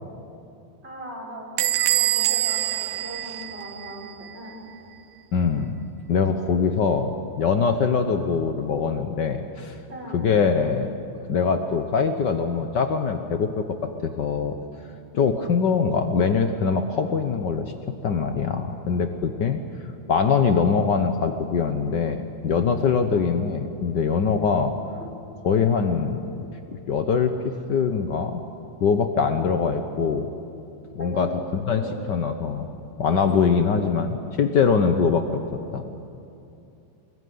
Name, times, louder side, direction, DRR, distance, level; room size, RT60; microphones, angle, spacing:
voice 1, 0.8-4.5 9.9-10.2 31.0-31.3 31.7-32.1, equal, 20° right, -3 dB, 6.5 m, -38 dB
Bell / Squeak, 1.6-4.1, right 14 dB, 90° right, 2.3 m, -24 dB
voice 2, 5.3-5.8 6.1-7.1 7.4-9.8 10.1-10.9 11.3-14.6 15.1-17.7 18.0-19.6 20.1-24.7 25.4-26.2 26.9-27.3 27.7-28.4 28.8-30.3 30.9-31.3 31.7-31.8 32.1-32.7 33.0-35.4 35.7-35.8, left 5 dB, 90° left, 7 dB, 0.9 m, -23 dB
24.0 x 21.5 x 9.5 m, 2.7 s
omnidirectional pair, 3.5 m